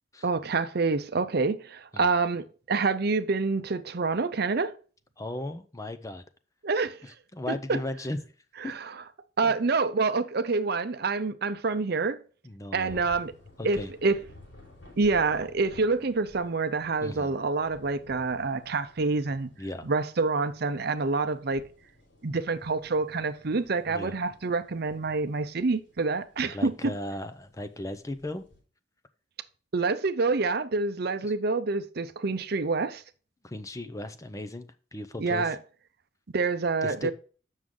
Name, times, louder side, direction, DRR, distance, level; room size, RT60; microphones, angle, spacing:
voice 1, 0.2-4.7 6.6-7.0 7.5-7.6 8.7-8.8 9.4-12.2 12.7-13.3 13.6-14.2 15.0-19.5 19.8-21.6 22.2-26.9 29.7-33.0 35.2-35.6 36.3-37.1, right 4 dB, 55° right, 0.6 m, -27 dB
voice 2, 5.2-6.2 7.0-8.2 8.6-8.7 9.4-9.5 12.4-13.1 13.6-13.9 17.0-17.3 19.6-19.9 23.9-24.2 26.5-28.4 33.4-35.6 36.8-37.1, left 1 dB, 15° left, 0.6 m, -36 dB
sound 1, 12.9-28.6, left 1 dB, 80° left, 4.7 m, -54 dB
7.8 x 6.3 x 3.7 m
head